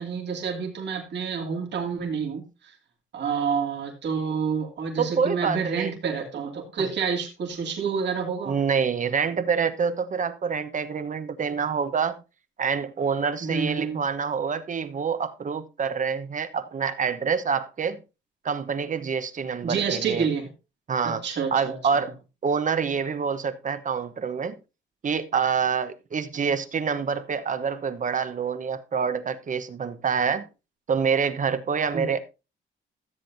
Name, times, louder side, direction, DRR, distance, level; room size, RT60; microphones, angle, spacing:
voice 1, 0.0-2.7 3.1-8.6 13.4-14.0 19.6-20.5 21.0-21.8 26.4-26.5 31.9-32.1, right 6 dB, 60° right, 2.6 m, -28 dB
voice 2, 5.0-5.9 8.5-12.2 12.6-18.0 18.4-20.3 20.9-21.2 21.5-22.1 22.4-24.6 25.0-30.5 30.9-32.2, right 6 dB, 40° right, 1.0 m, -26 dB
14.0 x 7.8 x 2.7 m
cardioid pair, 90°, 20 cm